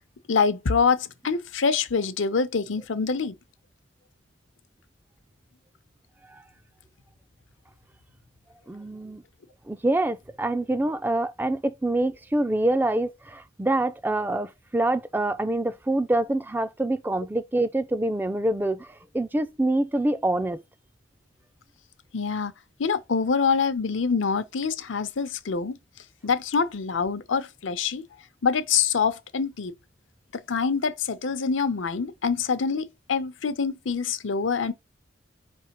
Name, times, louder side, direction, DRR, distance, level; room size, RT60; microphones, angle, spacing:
voice 1, 0.3-3.3 22.1-22.5 22.8-25.8 26.2-28.0 28.4-29.7 30.5-34.7, left 5 dB, 85° left, 0.7 m, -25 dB
voice 2, 8.7-9.2 9.7-20.6, right 1 dB, 10° right, 0.3 m, -26 dB
5.0 x 3.4 x 2.9 m
head